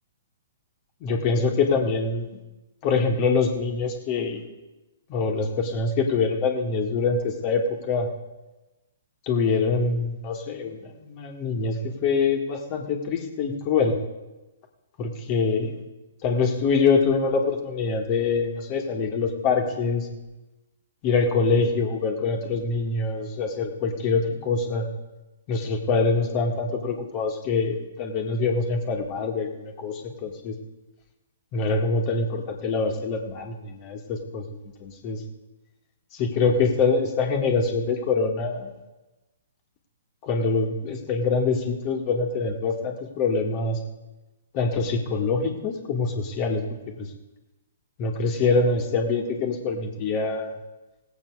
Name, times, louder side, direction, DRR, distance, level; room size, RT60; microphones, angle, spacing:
voice 1, 1.0-2.3 2.8-4.4 5.1-8.1 9.3-14.0 15.0-15.8 16.2-20.1 21.0-24.9 25.5-30.5 31.5-34.4 34.8-35.2 36.1-38.7 40.2-43.8 44.5-46.6 47.0-47.1 48.0-50.6, left 4 dB, 35° left, 2 dB, 1.9 m, -24 dB
18.0 x 8.1 x 4.9 m, 1.1 s
figure-of-eight pair, 120°, 0 cm